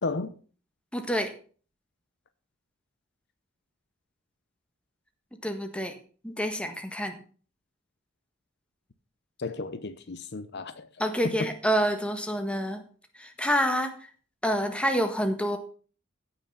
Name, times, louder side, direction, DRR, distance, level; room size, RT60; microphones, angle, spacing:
voice 1, 0.0-0.3 9.4-10.9 11.2-11.5, left 3 dB, 55° left, 0.8 m, -33 dB
voice 2, 0.9-1.3 5.4-6.0 6.2-7.1 11.0-12.8 13.2-13.9 14.4-15.6, equal, 5° left, 1.5 m, -27 dB
16.0 x 6.1 x 5.6 m
head